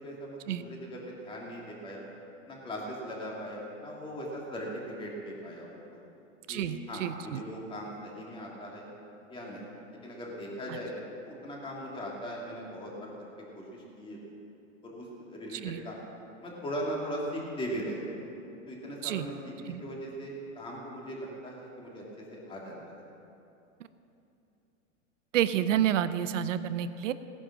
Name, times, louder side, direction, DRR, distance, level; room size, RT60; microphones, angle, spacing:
voice 1, 0.0-2.0 2.5-5.8 6.5-8.9 9.3-9.6 10.0-13.1 13.5-14.2 14.8-16.0 16.4-18.1 18.7-22.0 22.3-22.9, equal, 15° left, -3 dB, 2.8 m, -39 dB
voice 2, 6.5-7.4 10.7-10.8 15.5-15.8 19.0-19.3 19.7-19.8 25.3-27.1, right 10 dB, 70° right, 13 dB, 0.8 m, -29 dB
18.0 x 10.0 x 6.2 m, 2.8 s
supercardioid pair, 150°, 38 cm